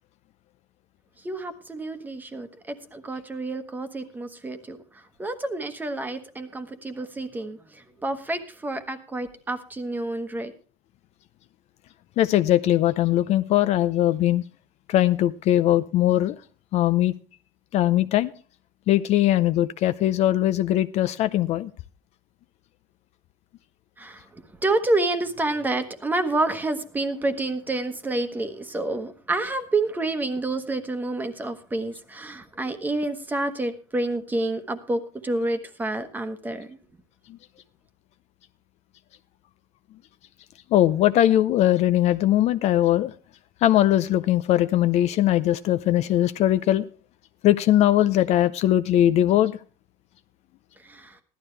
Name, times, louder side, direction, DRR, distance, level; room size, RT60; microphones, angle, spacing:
voice 1, 1.2-4.8 5.2-10.5 24.0-36.8 50.8-51.1, right 2 dB, 10° right, 9 dB, 1.2 m, -29 dB
voice 2, 12.2-14.4 14.9-16.3 16.7-17.1 17.7-18.3 18.9-21.7 40.7-43.1 43.6-46.8 47.4-49.5, left 13 dB, 50° left, 13 dB, 0.6 m, -20 dB
16.0 x 12.0 x 3.3 m, 0.39 s
cardioid pair, 140°, 15 cm